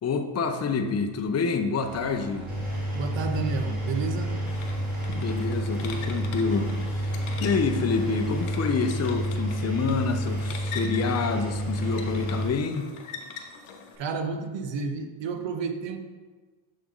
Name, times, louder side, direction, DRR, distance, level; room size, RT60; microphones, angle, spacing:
voice 1, 0.0-2.5 5.1-12.9, left 4 dB, 30° left, 6 dB, 0.6 m, -27 dB
sound 1, 1.8-8.5, right 3 dB, 85° right, 1.0 m, -43 dB
Engine, 2.5-12.5, equal, 15° right, 1.5 m, -30 dB
voice 2, 2.9-4.3 14.0-16.0, right 4 dB, 60° right, 7 dB, 0.8 m, -31 dB
sound 2, 4.5-14.0, left 5 dB, 85° left, 0.9 m, -43 dB
7.0 x 3.7 x 3.7 m, 1.3 s
cardioid pair, 80°, 49 cm